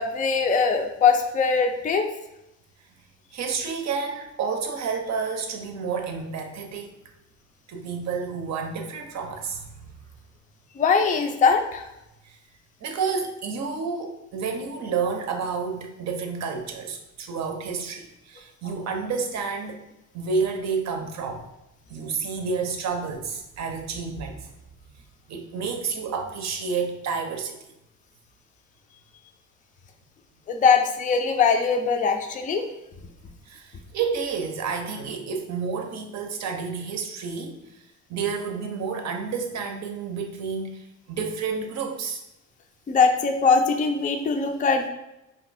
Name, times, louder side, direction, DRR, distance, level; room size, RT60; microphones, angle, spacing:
voice 1, 0.0-2.1 10.8-11.9 30.5-32.7 42.9-44.9, left 5 dB, 25° left, 5 dB, 0.4 m, -21 dB
voice 2, 3.3-7.0 7.7-9.7 12.2-12.4 12.8-19.8 20.1-21.4 21.9-24.5 25.3-27.6 33.5-37.6 38.1-42.2, right 5 dB, 65° right, 4 dB, 0.6 m, -30 dB
2.6 x 2.3 x 4.0 m, 0.90 s
cardioid pair, 90°, 30 cm